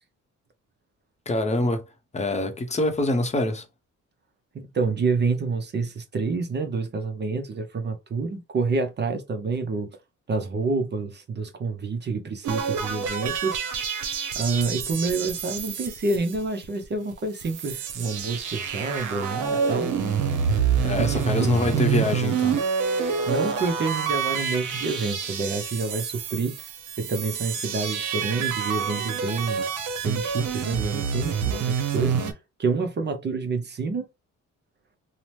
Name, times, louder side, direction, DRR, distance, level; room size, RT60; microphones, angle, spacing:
voice 1, 1.3-1.8 2.1-3.7 20.8-22.7, left 2 dB, 20° left, 0.7 m, -25 dB
voice 2, 4.5-10.0 10.3-13.6 14.4-19.9 21.0-21.8 23.3-26.6 27.0-29.6 30.0-34.1, right 4 dB, 35° right, 0.6 m, -28 dB
sound 1, 12.4-16.8 17.1-17.2 17.4-32.3, right 6 dB, 85° right, 0.7 m, -27 dB
2.7 x 2.1 x 3.1 m
cardioid pair, 90°, 30 cm